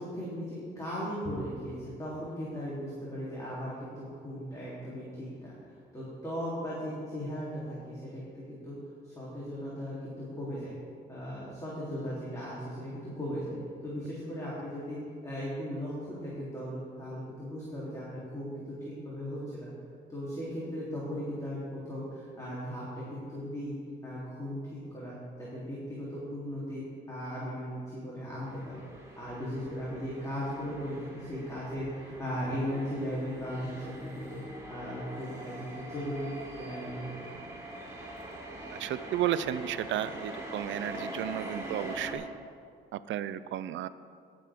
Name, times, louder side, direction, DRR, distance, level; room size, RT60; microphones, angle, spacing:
voice 1, 0.0-8.7 9.0-10.7 11.1-13.5 13.8-18.6 18.8-19.7 20.1-23.7 24.0-24.6 24.9-25.1 25.4-26.8 27.1-28.8 29.2-34.4 34.7-36.3 36.6-37.3, equal, 15° left, -9 dB, 3.2 m, -37 dB
sound 1, 28.4-42.1, right 1 dB, 15° right, 3.3 m, -43 dB
voice 2, 38.8-42.2 42.9-43.9, right 11 dB, 75° right, 15 dB, 0.5 m, -33 dB
17.5 x 7.7 x 3.6 m, 2.2 s
cardioid pair, 90°, 20 cm